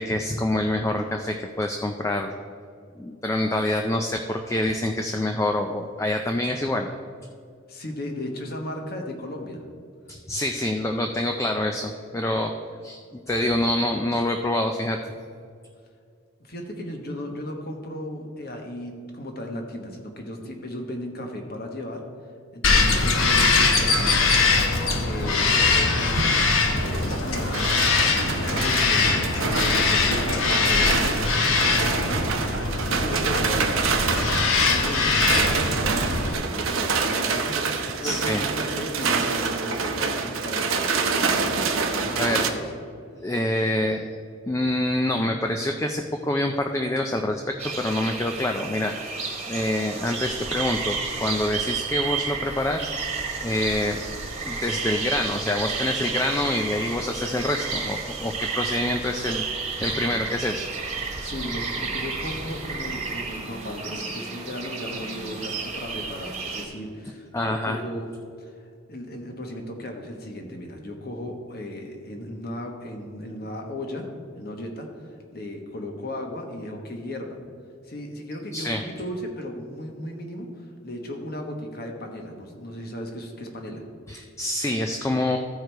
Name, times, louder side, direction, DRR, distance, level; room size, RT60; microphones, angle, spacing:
voice 1, 0.0-2.3 3.0-6.9 10.1-12.5 12.8-15.0 38.0-38.4 41.8-42.7 43.2-44.2 44.5-48.9 49.5-52.9 53.4-54.0 54.4-59.4 59.8-60.7 67.3-67.8 78.5-78.8 84.1-85.4, left 1 dB, 15° left, 4 dB, 0.4 m, -26 dB
voice 2, 7.7-9.6 16.4-22.0 22.5-24.2 24.9-26.3 26.7-41.7 42.0-42.7 61.2-68.1 68.4-68.5 68.9-74.1 74.4-77.4 77.8-83.8, left 1 dB, 50° left, 3 dB, 1.2 m, -35 dB
Bird vocalization bird call bird song, 22.6-36.3, left 4 dB, 85° left, 1.0 m, -22 dB
sound 1, 25.9-42.5, right 4 dB, 85° right, 0.8 m, -27 dB
sound 2, 47.6-66.6, right 5 dB, 30° right, 1.4 m, -31 dB
14.5 x 4.8 x 4.6 m, 2.3 s
head